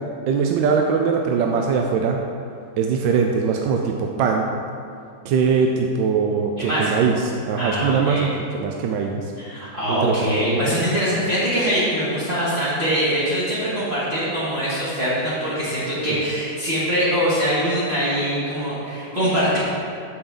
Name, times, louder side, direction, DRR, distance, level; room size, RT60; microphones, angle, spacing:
voice 1, 0.3-2.2 2.8-4.5 5.2-9.3 9.9-10.3 16.1-16.2, right 5 dB, 75° right, 2 dB, 1.2 m, -21 dB
voice 2, 6.6-7.0 7.6-8.3 9.4-19.6, equal, 30° right, -11 dB, 2.3 m, -23 dB
8.5 x 7.1 x 3.9 m, 2.3 s
omnidirectional pair, 2.2 m